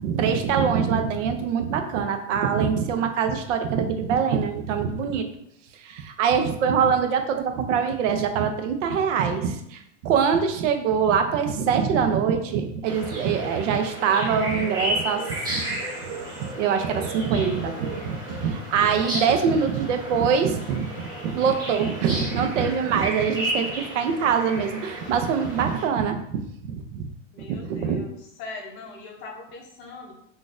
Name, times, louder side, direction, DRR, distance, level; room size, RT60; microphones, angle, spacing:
voice 1, 0.0-5.2 5.7-15.8 16.4-27.1 27.5-28.0, right 6 dB, 70° right, 6 dB, 0.6 m, -24 dB
sound 1, 12.8-25.9, right 1 dB, 10° right, 0.6 m, -33 dB
voice 2, 19.0-19.7 27.3-30.1, left 3 dB, 35° left, 0 dB, 0.7 m, -40 dB
3.9 x 2.5 x 2.5 m, 0.71 s
supercardioid pair, 155°, 38 cm